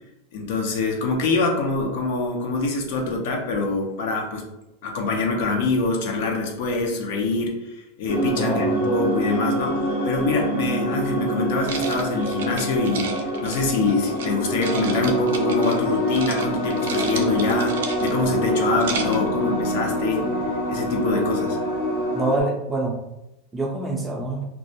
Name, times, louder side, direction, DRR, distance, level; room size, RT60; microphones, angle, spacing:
voice 1, 0.3-4.5 4.8-20.4 20.7-21.6, left 3 dB, 65° left, 2 dB, 0.5 m, -25 dB
sound 1, 8.1-22.4, equal, 85° left, 0.9 m, -25 dB
voice 2, 8.4-8.8 21.1-21.3 22.1-23.0 23.5-24.5, right 2 dB, 10° right, 0 dB, 0.4 m, -25 dB
sound 2, 11.6-14.3 14.6-15.8 16.1-16.4 16.7-18.3 18.6-19.3, right 5 dB, 85° right, 0.4 m, -32 dB
sound 3, 17.0-22.0, left 5 dB, 25° left, 0.7 m, -37 dB
2.2 x 2.1 x 2.7 m, 0.91 s
supercardioid pair, 140°, 0 cm